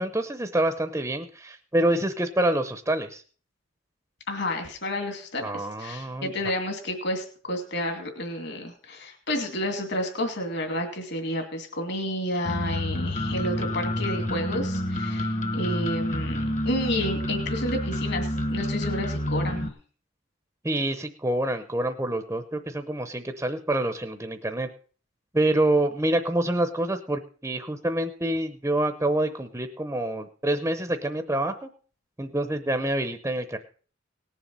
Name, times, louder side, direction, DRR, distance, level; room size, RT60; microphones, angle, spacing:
voice 1, 0.0-3.2 5.4-6.3 20.6-24.7 25.3-31.7 32.2-33.6, right 1 dB, 15° right, 8 dB, 0.7 m, -27 dB
voice 2, 4.3-19.7, left 1 dB, 55° left, 4 dB, 2.4 m, -30 dB
sound 1, 12.4-19.7, left 1 dB, 35° left, 1.2 m, -28 dB
18.5 x 7.3 x 5.4 m, 0.43 s
head